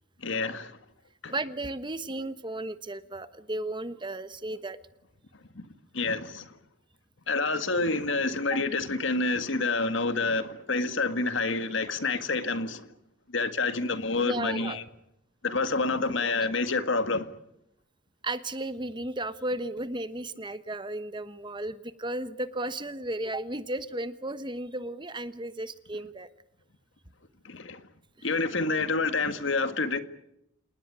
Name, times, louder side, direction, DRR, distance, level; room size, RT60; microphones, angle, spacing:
voice 1, 0.2-0.7 1.2-1.3 5.6-5.7 5.9-6.6 7.3-12.9 13.3-14.8 15.4-17.3 27.4-27.8 28.2-30.0, left 3 dB, 65° left, 1.9 m, -28 dB
voice 2, 1.3-4.8 8.5-8.6 14.2-14.8 18.2-26.3 28.2-28.3, right 1 dB, 25° right, 1.2 m, -34 dB
28.5 x 19.0 x 9.9 m
head